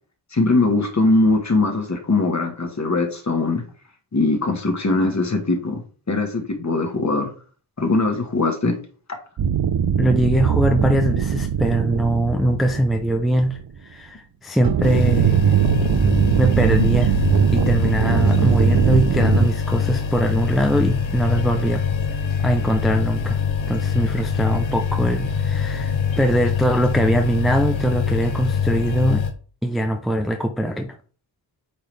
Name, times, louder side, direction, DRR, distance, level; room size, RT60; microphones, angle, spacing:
voice 1, 0.3-3.6 4.1-5.8 6.1-7.3 7.8-8.7 16.7-16.9, left 2 dB, 35° left, 1.7 m, -21 dB
sound 1, 9.4-13.7 14.6-19.5, right 7 dB, 50° right, 0.6 m, -20 dB
voice 2, 10.0-15.5 16.4-17.1 17.5-22.2 22.4-23.4 23.7-29.2 29.6-31.0, right 1 dB, ahead, 0.6 m, -22 dB
sound 2, 14.8-29.3, left 6 dB, 80° left, 1.1 m, -24 dB
8.5 x 3.9 x 3.4 m
wide cardioid pair, 115°, 46 cm